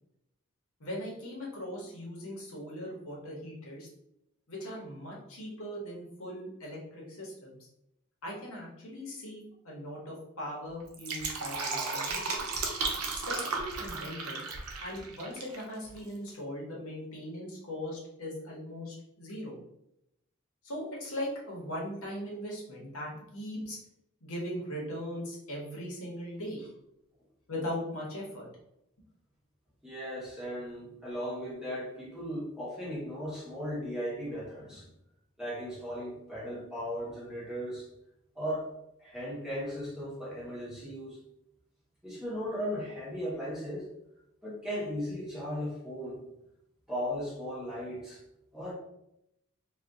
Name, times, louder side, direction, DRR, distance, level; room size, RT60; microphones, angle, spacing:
voice 1, 0.8-3.9 4.5-7.6 8.2-12.5 13.3-14.4 14.8-19.6 20.6-23.8 24.2-26.7 27.5-28.5, equal, 75° left, -3 dB, 1.0 m, -39 dB
Fill (with liquid), 10.8-15.6 15.9-16.0, right 4 dB, 85° right, 0.6 m, -34 dB
voice 2, 29.8-34.9 35.4-37.9 38.3-38.7 39.0-41.2 42.0-43.9 44.4-46.2 46.9-48.2 48.5-48.7, equal, 5° right, -8 dB, 1.1 m, -37 dB
2.6 x 2.4 x 3.5 m, 0.82 s
head